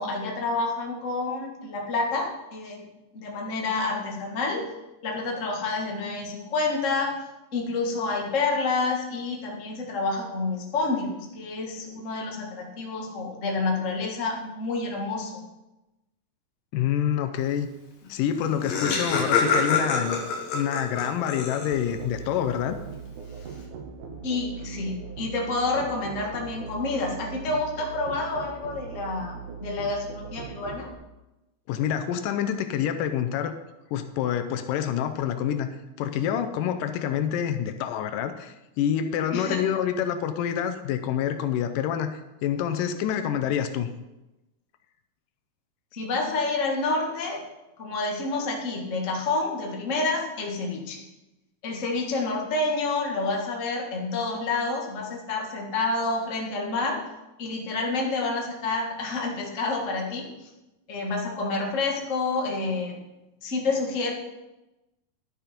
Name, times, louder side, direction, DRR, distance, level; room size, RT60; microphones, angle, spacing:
voice 1, 0.0-2.8 3.1-4.7 5.0-7.1 7.5-15.3 24.2-29.4 29.6-30.9 39.3-39.6 45.9-47.4 47.8-51.0 51.6-57.0 57.4-60.3 60.9-63.0 63.4-64.1, left 3 dB, 30° left, -1 dB, 1.4 m, -28 dB
voice 2, 16.7-17.7 18.1-20.2 20.5-22.8 31.7-33.6 33.9-43.9, left 9 dB, 80° left, 8 dB, 2.3 m, -27 dB
Laughter, 18.1-18.2 18.3-22.0, left 4 dB, 60° left, 2.4 m, -26 dB
Musical instrument, 21.7-30.9, right 6 dB, 70° right, 2.4 m, -40 dB
11.5 x 7.2 x 5.1 m, 0.99 s
omnidirectional pair, 3.8 m